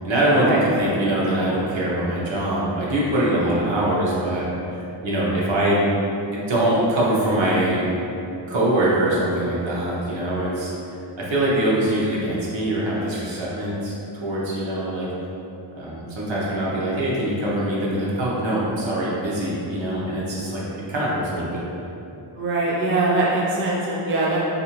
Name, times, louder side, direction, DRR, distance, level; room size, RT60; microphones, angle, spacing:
voice 1, 0.0-4.5 5.0-5.9 6.3-7.9 8.5-10.7 11.2-13.9 14.2-15.1 15.8-20.6 20.9-21.6, right 1 dB, 75° right, -6 dB, 0.8 m, -23 dB
voice 2, 22.3-24.4, right 2 dB, 30° right, -5 dB, 0.4 m, -22 dB
2.6 x 2.5 x 2.9 m, 2.8 s
wide cardioid pair, 160°, 45 cm